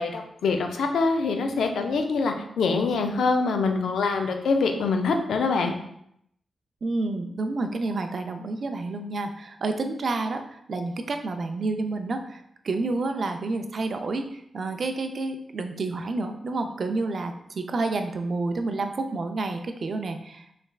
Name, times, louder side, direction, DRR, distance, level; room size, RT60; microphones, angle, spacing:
voice 1, 0.0-5.7, left 4 dB, 85° left, 5 dB, 0.4 m, -24 dB
voice 2, 6.8-20.6, right 3 dB, 60° right, 6 dB, 0.4 m, -29 dB
3.3 x 3.2 x 2.3 m, 0.73 s
cardioid pair, 70°, 0 cm